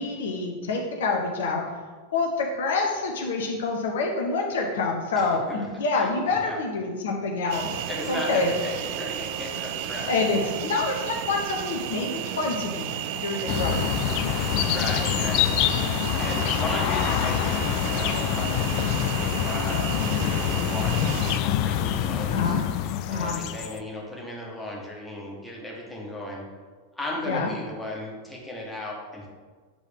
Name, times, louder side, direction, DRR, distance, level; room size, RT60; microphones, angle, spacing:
voice 1, 0.0-1.6 2.1-7.8 8.1-8.5 10.1-14.1 22.3-22.6 23.1-23.4 27.3-27.5, left 3 dB, 60° left, 1 dB, 0.7 m, -27 dB
voice 2, 5.2-5.7 5.9-6.6 7.9-10.5 12.1-12.3 13.1-13.2 13.6-14.0 14.3-18.8 19.2-22.5 23.1-26.4 26.9-29.3, left 1 dB, 5° left, -4 dB, 1.5 m, -36 dB
sound 1, 7.5-21.4, right 9 dB, 45° right, 0.4 m, -33 dB
sound 2, 13.5-23.8, left 10 dB, 45° left, 0.3 m, -26 dB
7.4 x 3.5 x 3.5 m, 1.4 s
figure-of-eight pair, 90°, 0 cm